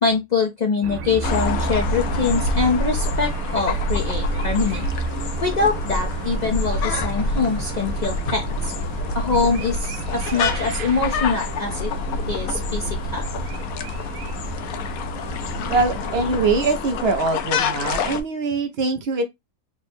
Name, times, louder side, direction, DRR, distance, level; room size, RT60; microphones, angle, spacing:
voice 1, 0.0-4.9 5.4-8.7 9.1-11.9 12.2-13.3, left 4 dB, 55° left, 0.4 m, -24 dB
sound 1, 0.8-16.5, right 3 dB, 90° right, 1.1 m, -32 dB
sound 2, 1.2-18.2, left 3 dB, 85° left, 1.1 m, -27 dB
voice 2, 15.7-19.2, right 3 dB, 65° right, 0.6 m, -22 dB
3.5 x 2.0 x 4.2 m
omnidirectional pair, 1.5 m